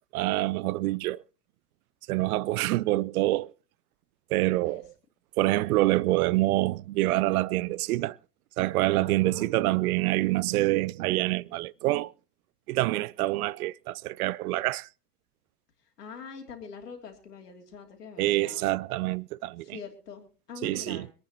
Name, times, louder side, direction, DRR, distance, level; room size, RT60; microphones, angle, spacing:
voice 1, 0.1-1.2 2.1-3.5 4.3-4.9 5.4-8.2 8.6-12.1 12.7-14.9 18.2-19.8 20.6-21.1, right 18 dB, 70° right, 0.6 m, -26 dB
voice 2, 9.0-9.5 16.0-18.7 19.6-21.1, left 5 dB, 85° left, 3.1 m, -44 dB
25.0 x 9.4 x 3.0 m
hypercardioid pair, 90°, 46 cm